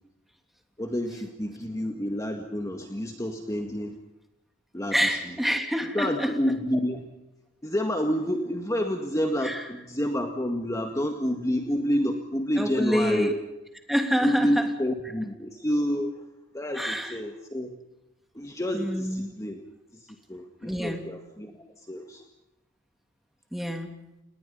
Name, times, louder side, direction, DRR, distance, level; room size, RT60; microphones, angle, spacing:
voice 1, 0.8-4.0 4.7-5.2 5.8-7.0 7.6-13.3 14.2-16.2 16.5-17.8 18.3-19.6 19.9-22.2, equal, 15° left, 4 dB, 1.8 m, -29 dB
voice 2, 4.9-6.3 9.4-9.6 12.6-13.3 13.9-14.6 16.7-17.2 18.7-19.3 20.6-21.0 23.5-23.9, equal, ahead, 4 dB, 2.9 m, -26 dB
29.5 x 20.5 x 5.5 m, 0.95 s
head